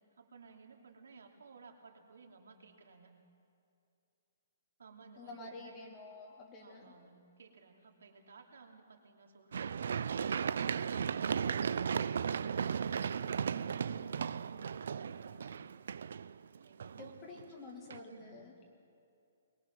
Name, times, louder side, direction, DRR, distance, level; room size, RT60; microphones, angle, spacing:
voice 1, 0.2-3.1 4.8-5.8 6.6-11.7 13.8-15.5 16.6-17.2 17.6-18.4, right 4 dB, 85° right, 2 dB, 2.8 m, -57 dB
voice 2, 5.2-6.9 17.0-18.7, left 3 dB, 20° left, 0 dB, 2.0 m, -49 dB
Run, 9.5-17.4 17.9-18.0, right 7 dB, 70° right, 0.5 m, -35 dB
22.0 x 21.5 x 6.1 m, 2.7 s
hypercardioid pair, 165°, 0 cm